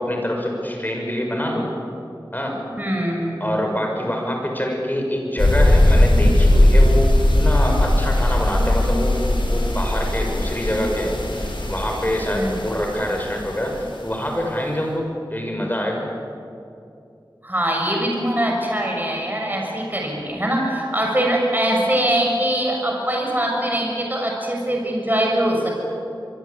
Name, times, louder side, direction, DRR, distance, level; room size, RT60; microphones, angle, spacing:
voice 1, 0.0-1.7 2.3-2.6 3.4-9.2 9.5-16.1, equal, 20° left, 1 dB, 6.5 m, -25 dB
voice 2, 2.8-3.5 12.3-12.6 17.4-25.8, right 1 dB, 20° right, 0 dB, 6.6 m, -22 dB
sound 1, 5.4-13.8, left 1 dB, 85° left, 4.7 m, -18 dB
25.5 x 23.0 x 8.6 m, 2.6 s
wide cardioid pair, 45°, 8 cm